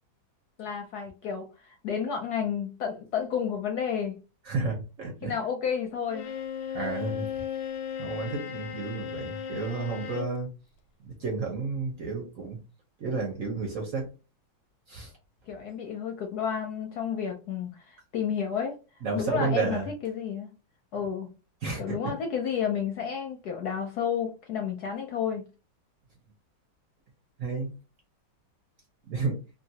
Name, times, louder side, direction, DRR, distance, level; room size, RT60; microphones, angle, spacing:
voice 1, 0.6-4.2 5.2-6.3 15.5-18.8 19.1-20.5 20.9-21.3 21.8-25.4, left 7 dB, 70° left, 0.9 m, -31 dB
voice 2, 4.5-5.3 6.7-7.3 8.0-10.5 11.0-12.6 13.0-14.1 14.9-15.1 19.0-19.9 21.6-22.0 27.4-27.7 29.1-29.4, right 4 dB, 60° right, 0.9 m, -31 dB
Bowed string instrument, 6.1-10.4, left 8 dB, 90° left, 1.4 m, -36 dB
3.0 x 2.4 x 2.7 m
omnidirectional pair, 2.1 m